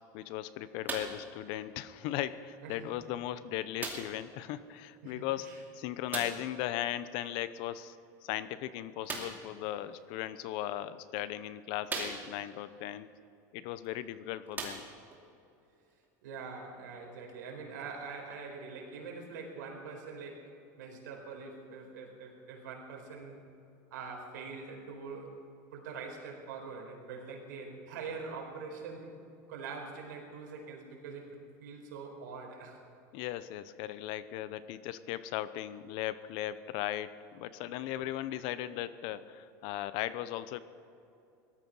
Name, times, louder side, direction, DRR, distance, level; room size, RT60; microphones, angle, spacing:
voice 1, 0.1-8.0 8.2-13.1 13.5-14.8 33.1-40.6, left 13 dB, 60° left, 15 dB, 0.8 m, -37 dB
sound 1, 0.9-1.3 2.2-2.3 3.8-4.2 6.1-6.5 9.0-9.5 10.5-10.6 11.2-11.3 11.9-12.6 13.8-13.9 14.5-15.2 16.0-16.1, right 4 dB, 20° right, 2.6 m, -39 dB
voice 2, 5.0-5.6 16.2-20.4 20.8-23.4 23.9-25.4 25.7-29.2 29.5-32.8, right 4 dB, 85° right, 1 dB, 4.6 m, -44 dB
18.5 x 13.5 x 5.6 m, 2.7 s
supercardioid pair, 130°, 10 cm